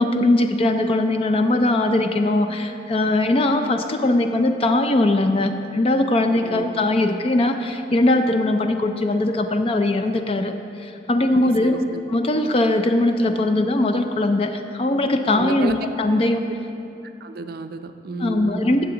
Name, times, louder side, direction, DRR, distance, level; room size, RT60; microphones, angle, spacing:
voice 1, 0.0-10.5 10.8-11.8 12.1-16.4 18.2-18.8, left 2 dB, 35° left, 6 dB, 0.4 m, -20 dB
voice 2, 6.4-6.8 11.4-12.0 15.3-15.9 17.2-18.8, right 3 dB, 60° right, 8 dB, 0.5 m, -32 dB
15.5 x 7.6 x 3.9 m, 2.7 s
head